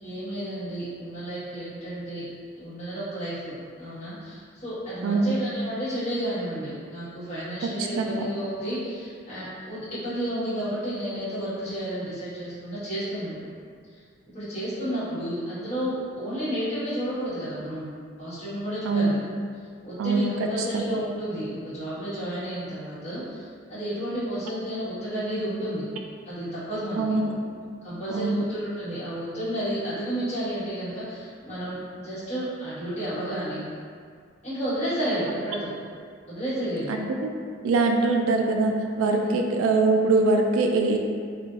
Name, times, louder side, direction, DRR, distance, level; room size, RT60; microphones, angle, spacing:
voice 1, 0.0-2.3 2.6-13.3 14.3-17.9 18.2-19.2 19.8-25.9 26.2-27.2 27.8-33.6 34.4-35.7 36.3-36.9 39.2-39.4, right 1 dB, 35° left, -14 dB, 1.4 m, -31 dB
voice 2, 5.0-5.3 8.0-8.3 18.8-19.2 20.0-20.5 20.7-20.8 27.0-27.4 28.1-28.4 36.9-37.3 37.6-41.0, right 3 dB, 85° right, 3 dB, 0.3 m, -23 dB
3.6 x 2.6 x 2.5 m, 2.1 s
head